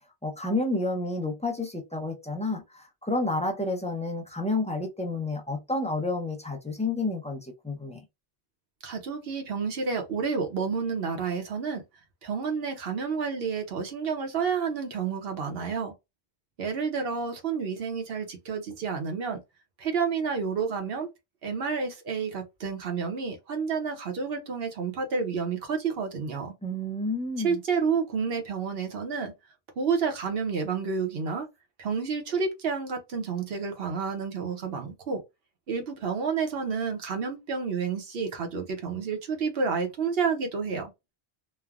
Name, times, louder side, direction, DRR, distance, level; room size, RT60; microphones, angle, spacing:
voice 1, 0.2-8.0 26.6-27.6, left 2 dB, 10° left, 0.4 m, -30 dB
voice 2, 8.8-11.8 12.2-15.9 16.6-19.4 19.8-21.1 21.4-26.5 27.4-29.3 29.8-31.5 31.8-35.2 35.7-40.9, right 5 dB, 70° right, 0.9 m, -30 dB
3.2 x 2.1 x 2.3 m
omnidirectional pair, 1.1 m